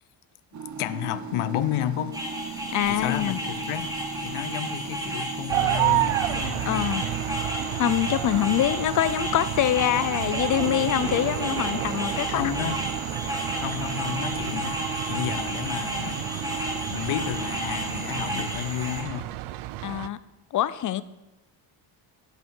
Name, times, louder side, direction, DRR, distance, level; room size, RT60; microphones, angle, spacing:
sound 1, 0.5-18.4, right 5 dB, 35° right, 0.8 m, -37 dB
voice 1, 0.8-3.9 4.2-6.9 12.3-12.9 13.5-19.3, left 13 dB, 85° left, 0.7 m, -32 dB
sound 2, 2.1-19.0, equal, 5° right, 1.6 m, -33 dB
voice 2, 2.7-3.4 6.7-7.0 7.7-12.5 14.5-14.6 19.8-20.2 20.5-21.0, left 12 dB, 45° left, 0.4 m, -25 dB
sound 3, 5.5-20.1, right 16 dB, 90° right, 0.6 m, -31 dB
10.5 x 8.1 x 5.4 m
cardioid pair, 155°, 48 cm